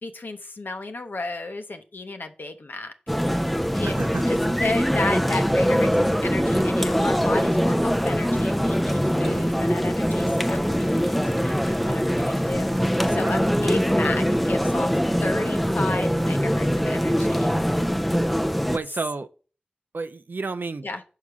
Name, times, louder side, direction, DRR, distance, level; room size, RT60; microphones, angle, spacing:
voice 1, 0.0-2.9 3.7-4.0 4.2-14.9 15.2-17.5 20.8-21.0, left 2 dB, 75° left, 0.7 m, -33 dB
sound 1, 3.1-18.8, equal, ahead, 0.5 m, -22 dB
voice 2, 3.8-4.2 9.3-9.5 13.2-13.3 18.7-19.3 19.9-20.9, right 3 dB, 75° right, 0.5 m, -31 dB
5.7 x 4.9 x 6.0 m
wide cardioid pair, 65°, 3 cm